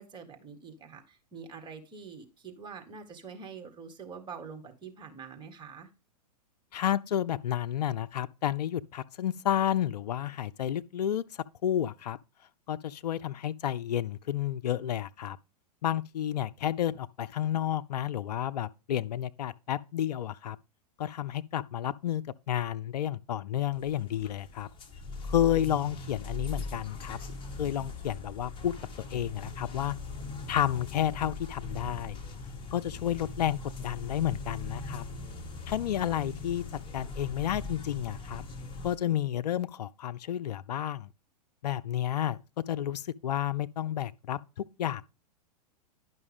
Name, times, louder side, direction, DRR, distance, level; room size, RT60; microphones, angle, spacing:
voice 1, 0.0-5.9, right 5 dB, 20° right, 1.7 m, -45 dB
voice 2, 6.7-12.2 12.7-15.4 15.8-20.6 21.0-24.7 25.3-27.2 27.6-29.9 30.5-32.2 32.7-35.0 35.7-36.6 36.9-38.4 38.8-41.1 41.6-45.0, left 11 dB, 75° left, 0.4 m, -31 dB
sound 1, 23.7-39.0, left 3 dB, 25° left, 1.7 m, -40 dB
10.5 x 5.6 x 3.5 m
hypercardioid pair, 105°, 21 cm